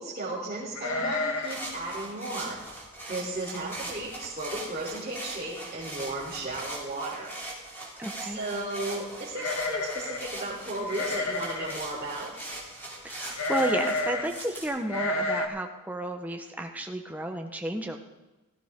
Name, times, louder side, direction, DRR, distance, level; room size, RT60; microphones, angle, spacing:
voice 1, 0.0-2.6 3.1-7.3 8.2-12.3, right 2 dB, 30° right, -8 dB, 3.5 m, -35 dB
sound 1, 0.8-1.7 2.0-2.1 2.5-2.8 3.4-3.5 3.8-4.3 4.6-4.7 5.8-5.9 6.2-6.6 9.3-10.3 10.9-11.8 13.3-14.3 14.9-15.5, left 2 dB, 75° left, 1.6 m, -30 dB
sound 2, 1.4-14.7, right 1 dB, 10° left, 3.3 m, -40 dB
voice 2, 8.0-8.4 13.0-18.0, right 1 dB, 5° right, 3 dB, 1.0 m, -32 dB
17.0 x 15.0 x 3.7 m, 1.1 s
head